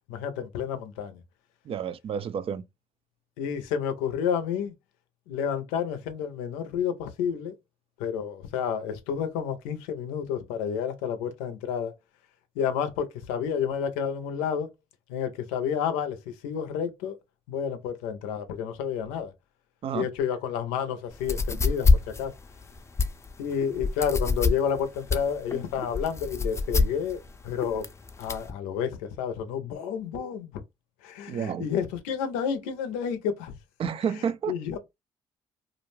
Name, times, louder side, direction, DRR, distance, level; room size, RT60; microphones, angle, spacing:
voice 1, 0.1-1.2 3.4-4.7 5.3-7.5 8.0-11.9 12.6-14.7 15.1-16.2 16.4-17.2 17.5-19.3 19.9-22.3 23.4-27.2 27.4-27.9 28.2-30.5 31.0-33.5 34.5-34.8, left 8 dB, 85° left, 0.5 m, -30 dB
voice 2, 1.7-2.6 19.8-20.1 31.3-31.7 33.8-34.5, right 7 dB, 50° right, 0.4 m, -30 dB
sound 1, 21.1-28.5, left 4 dB, 25° left, 0.5 m, -26 dB
2.4 x 2.1 x 3.1 m
hypercardioid pair, 55°, 12 cm